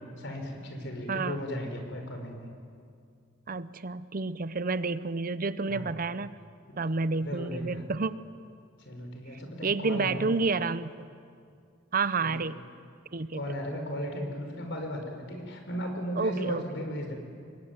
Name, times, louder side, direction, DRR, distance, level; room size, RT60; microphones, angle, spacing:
voice 1, 0.2-2.5 5.7-5.9 7.2-7.8 8.8-10.3 12.2-12.5 13.3-17.1, equal, 65° left, 4 dB, 5.4 m, -36 dB
voice 2, 1.1-1.4 3.5-6.4 6.8-8.2 9.6-10.9 11.9-12.6 13.1-13.4 16.2-16.6, right 4 dB, 45° right, 15 dB, 0.7 m, -29 dB
26.0 x 23.0 x 9.7 m, 2.3 s
head